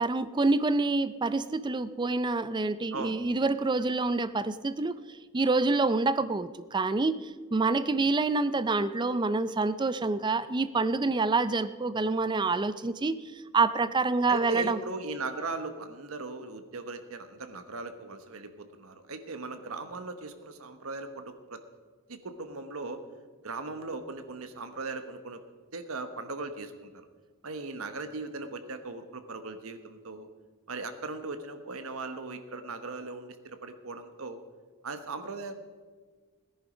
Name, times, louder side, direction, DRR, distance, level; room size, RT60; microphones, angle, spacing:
voice 1, 0.0-5.0 5.3-13.2 13.5-14.8, right 3 dB, 20° right, 14 dB, 0.4 m, -27 dB
voice 2, 14.3-21.6 22.1-23.0 23.4-25.4 25.7-27.1 27.4-30.3 30.7-34.4 34.8-35.5, right 3 dB, 85° right, 8 dB, 1.2 m, -38 dB
17.0 x 10.5 x 5.0 m, 1.5 s
head